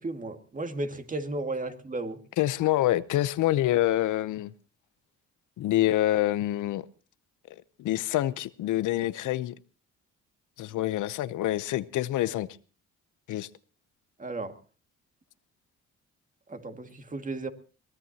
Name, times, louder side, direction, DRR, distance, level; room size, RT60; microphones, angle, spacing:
voice 1, 0.0-2.2 14.2-14.5 16.5-17.5, right 2 dB, 25° right, 2.1 m, -34 dB
voice 2, 2.4-4.5 5.6-6.8 7.5-9.5 10.6-12.5 13.3-13.5, left 14 dB, 80° left, 0.8 m, -26 dB
23.0 x 17.5 x 2.8 m
cardioid pair, 90°, 30 cm